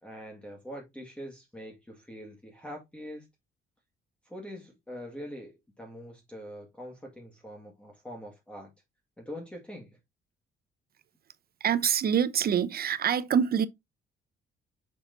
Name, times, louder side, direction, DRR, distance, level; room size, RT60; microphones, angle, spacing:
voice 1, 0.0-3.3 4.3-5.5 5.8-8.7 9.2-9.9, equal, 5° left, 1.8 m, -43 dB
voice 2, 11.6-13.7, right 8 dB, 50° right, 0.8 m, -25 dB
6.3 x 5.8 x 2.6 m
cardioid pair, 90°, 20 cm